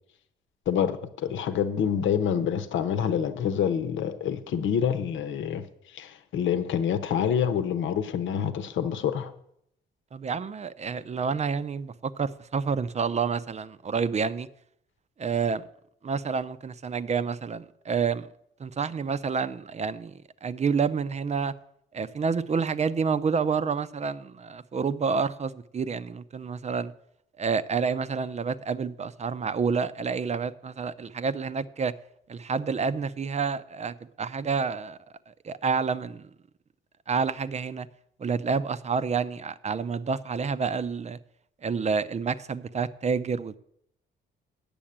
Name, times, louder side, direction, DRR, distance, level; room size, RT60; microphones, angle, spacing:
voice 1, 0.7-5.7 5.9-9.3, left 8 dB, 75° left, 1.0 m, -27 dB
voice 2, 10.1-14.5 15.2-15.6 16.0-18.3 18.6-21.5 21.9-26.9 27.4-31.9 32.3-35.0 35.3-36.3 37.1-37.9 38.2-41.2 41.6-43.6, right 5 dB, 35° right, 0.6 m, -29 dB
8.7 x 7.0 x 8.8 m
cardioid pair, 90°, 20 cm